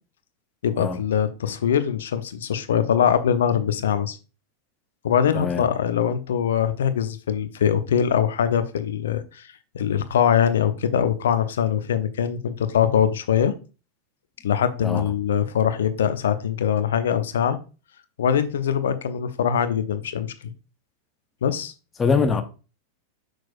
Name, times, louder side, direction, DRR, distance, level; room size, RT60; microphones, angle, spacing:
voice 1, 0.6-4.2 5.0-9.5 9.7-13.5 14.4-17.6 18.2-20.5 21.4-21.7, left 8 dB, 60° left, 0.7 m, -22 dB
voice 2, 5.3-5.6 14.8-15.0 22.0-22.4, left 5 dB, 20° left, 0.9 m, -22 dB
6.4 x 6.0 x 2.4 m
figure-of-eight pair, 90°, 0 cm